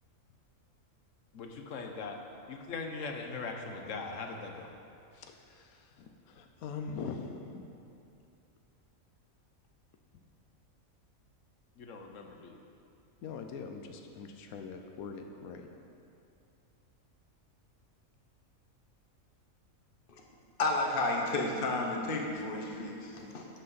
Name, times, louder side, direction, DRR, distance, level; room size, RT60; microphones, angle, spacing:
voice 1, 1.3-2.2 2.5-4.7 11.8-12.6, left 4 dB, 65° left, 3 dB, 1.2 m, -40 dB
voice 2, 5.1-7.7 13.2-15.7, left 5 dB, 90° left, 4 dB, 1.2 m, -43 dB
voice 3, 20.6-23.5, left 2 dB, 40° left, 0 dB, 1.2 m, -32 dB
11.5 x 8.0 x 4.1 m, 2.6 s
omnidirectional pair, 1.5 m